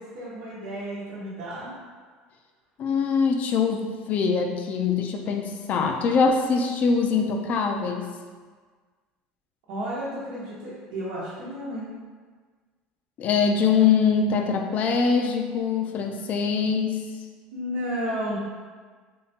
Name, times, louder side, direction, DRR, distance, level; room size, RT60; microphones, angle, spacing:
voice 1, 0.0-1.7 9.7-11.9 17.5-18.4, equal, 85° right, -8 dB, 0.9 m, -32 dB
voice 2, 2.8-8.1 13.2-17.0, left 5 dB, 45° left, 4 dB, 0.4 m, -23 dB
3.5 x 3.3 x 2.8 m, 1.5 s
cardioid pair, 120°, 3 cm